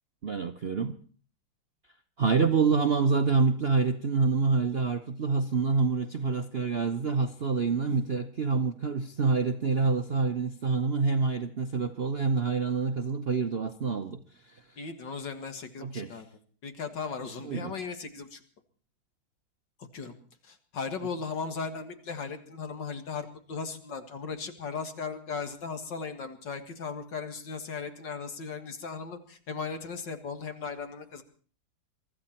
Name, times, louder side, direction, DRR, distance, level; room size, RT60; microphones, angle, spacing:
voice 1, 0.2-1.0 2.2-14.2 14.5-14.6 15.8-16.2 17.4-17.7, right 4 dB, 50° right, 7 dB, 0.7 m, -27 dB
voice 2, 14.8-16.3 16.6-18.4 19.9-20.1 20.4-31.2, left 5 dB, 65° left, 7 dB, 2.4 m, -37 dB
23.5 x 14.0 x 4.4 m, 0.42 s
omnidirectional pair, 2.1 m